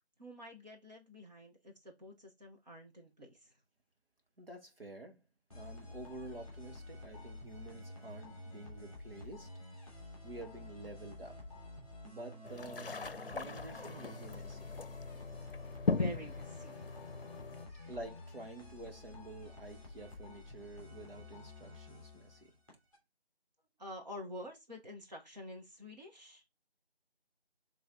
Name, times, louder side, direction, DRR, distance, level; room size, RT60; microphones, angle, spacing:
voice 1, 0.2-3.5 15.8-16.9 17.5-17.9 23.8-26.4, left 1 dB, 40° right, 1.6 m, -48 dB
voice 2, 4.4-5.2 5.5-9.5 10.2-11.4 12.0-13.0 13.3-14.7 17.9-22.5, right 2 dB, 60° right, 2.3 m, -49 dB
sound 1, 5.5-23.0, left 2 dB, 5° right, 2.4 m, -50 dB
sound 2, 12.4-17.7, left 4 dB, 60° left, 0.7 m, -39 dB
6.9 x 3.4 x 4.1 m
figure-of-eight pair, 170°, 32 cm